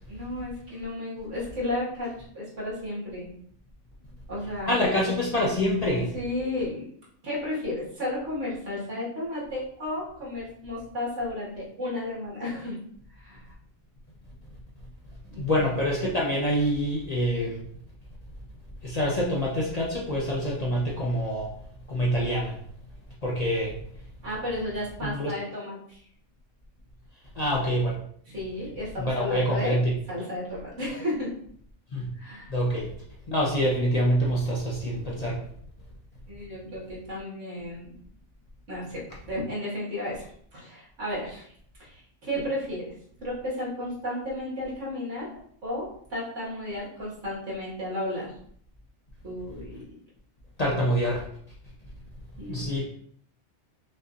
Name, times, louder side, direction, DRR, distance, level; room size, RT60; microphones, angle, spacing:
voice 1, 0.1-3.4 4.3-5.0 6.1-6.9 7.2-12.8 13.1-13.5 15.3-15.8 24.2-26.0 28.3-29.8 30.1-31.3 32.2-32.5 36.3-38.0 38.7-40.3 40.5-41.5 41.8-42.9 43.2-45.3 45.6-48.3 49.2-49.7 52.4-52.8, left 1 dB, 75° right, -7 dB, 2.1 m, -33 dB
voice 2, 4.7-6.1 15.4-17.6 18.8-21.5 21.9-22.6 23.2-23.8 25.0-25.3 27.3-28.0 29.0-30.0 31.9-32.1 32.5-32.9 33.3-35.4 50.6-51.3 52.5-52.8, equal, 40° left, -4 dB, 0.6 m, -26 dB
5.5 x 2.6 x 2.5 m, 0.63 s
omnidirectional pair, 1.3 m